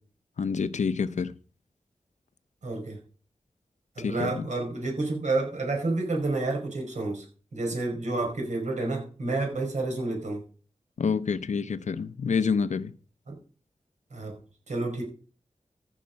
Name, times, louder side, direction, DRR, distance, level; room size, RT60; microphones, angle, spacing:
voice 1, 0.4-1.3 4.0-4.5 11.0-12.9, left 5 dB, 80° left, 0.7 m, -28 dB
voice 2, 2.6-3.0 4.0-7.2 7.5-10.4 13.3-13.4 14.1-14.3 14.7-15.0, right 2 dB, 75° right, 5.0 m, -29 dB
14.5 x 5.8 x 5.2 m
cardioid pair, 55°, 12 cm